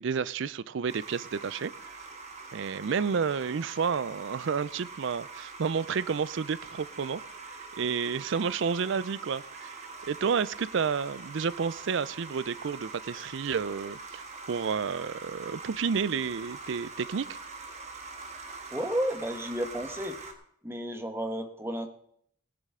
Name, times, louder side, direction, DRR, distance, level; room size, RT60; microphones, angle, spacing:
voice 1, 0.0-1.7 2.5-7.2 7.8-9.8 10.1-17.4, right 6 dB, 60° right, 18 dB, 0.4 m, -30 dB
sound 1, 0.9-20.3, right 3 dB, 35° right, 1.4 m, -44 dB
voice 2, 18.7-20.2 20.6-21.9, equal, 10° right, 6 dB, 1.1 m, -32 dB
17.5 x 11.0 x 3.7 m, 0.67 s
head